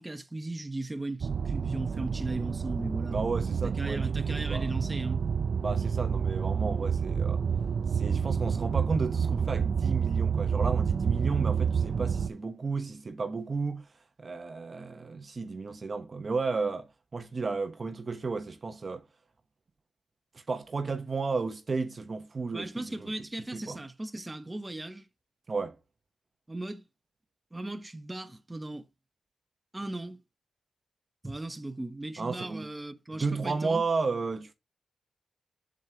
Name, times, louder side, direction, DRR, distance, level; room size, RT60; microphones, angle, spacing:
voice 1, 0.0-3.2 3.6-5.3 22.5-25.1 26.5-26.8 27.5-28.9 29.7-30.2 31.2-33.8, right 2 dB, 15° right, 0.9 m, -37 dB
sound 1, 1.2-12.3, right 6 dB, 60° right, 0.4 m, -29 dB
voice 2, 3.1-4.7 5.6-7.4 7.9-13.9 14.2-19.1 20.3-23.1 23.5-23.8 25.5-25.8 32.2-32.7 33.1-34.5, right 4 dB, 40° right, 0.9 m, -33 dB
7.4 x 6.5 x 2.8 m
cardioid pair, 70°, 0 cm